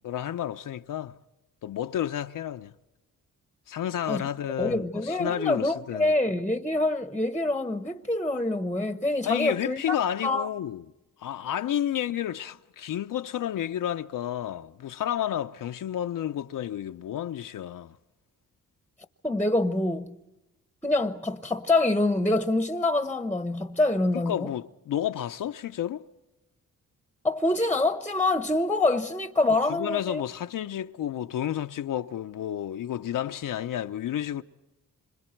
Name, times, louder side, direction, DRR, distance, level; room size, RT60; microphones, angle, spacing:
voice 1, 0.0-1.2 1.6-2.7 3.7-6.1 9.2-10.8 11.2-18.0 24.3-26.1 29.7-34.4, left 11 dB, 70° left, 0.7 m, -31 dB
voice 2, 4.6-10.0 10.2-10.5 19.2-20.1 20.8-24.5 27.2-30.2, left 2 dB, 5° left, 1.0 m, -26 dB
27.5 x 26.5 x 4.5 m
cardioid pair, 70°, 34 cm